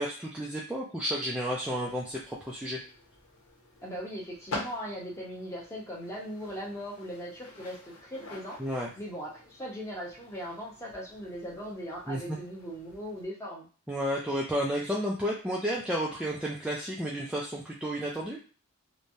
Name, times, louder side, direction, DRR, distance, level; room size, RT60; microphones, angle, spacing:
voice 1, 0.0-2.8 8.6-8.9 12.1-12.4 13.9-18.4, equal, 5° right, -4 dB, 0.4 m, -32 dB
sound 1, 1.8-13.2, left 2 dB, 80° left, 1.0 m, -47 dB
voice 2, 3.8-8.6 9.0-13.7, equal, 15° left, -4 dB, 0.9 m, -39 dB
3.1 x 2.2 x 2.6 m, 0.38 s
head